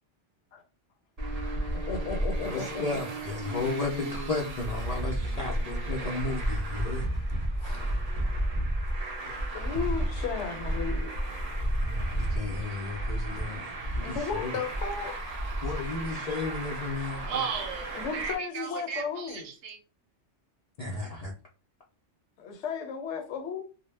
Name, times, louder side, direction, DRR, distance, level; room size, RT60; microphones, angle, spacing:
Traffic noise roadway noise, 1.2-18.3, right 1 dB, 50° right, 0.4 m, -32 dB
voice 1, 1.9-3.0 7.6-7.8 9.2-11.1 14.0-15.2 17.9-19.5 22.4-23.6, left 5 dB, 75° left, 0.9 m, -35 dB
voice 2, 2.4-7.1 11.8-13.7 13.9-14.5 15.6-17.2 20.8-21.3, left 3 dB, 55° left, 0.4 m, -34 dB
voice 3, 17.3-19.8, right 7 dB, 70° right, 0.9 m, -35 dB
2.1 x 2.0 x 3.2 m
omnidirectional pair, 1.3 m